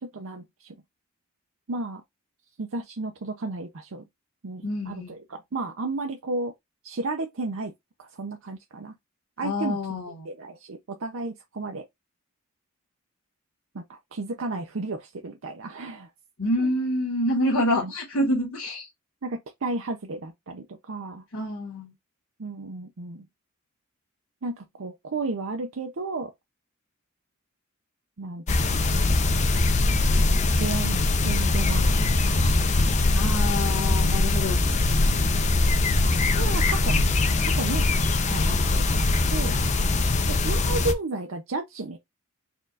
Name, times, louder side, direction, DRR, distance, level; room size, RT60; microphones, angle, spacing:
voice 1, 0.1-0.8 1.7-2.0 2.6-4.0 4.4-6.5 6.8-7.7 8.0-9.0 9.4-9.8 10.2-11.8 13.7-16.1 16.6-16.7 17.8-17.9 19.2-21.2 22.4-23.3 24.4-26.3 28.2-29.1 30.6-31.9 32.5-32.6 35.2-35.4 36.4-37.0 37.4-37.8 38.3-39.6 40.3-42.0, right 3 dB, 70° right, 0.6 m, -33 dB
voice 2, 4.6-5.2 9.4-10.3 16.4-18.9 21.3-21.9 33.1-34.6, left 1 dB, 75° left, 1.4 m, -27 dB
sound 1, 28.5-40.9, left 2 dB, 35° left, 0.5 m, -22 dB
4.4 x 2.4 x 3.9 m
head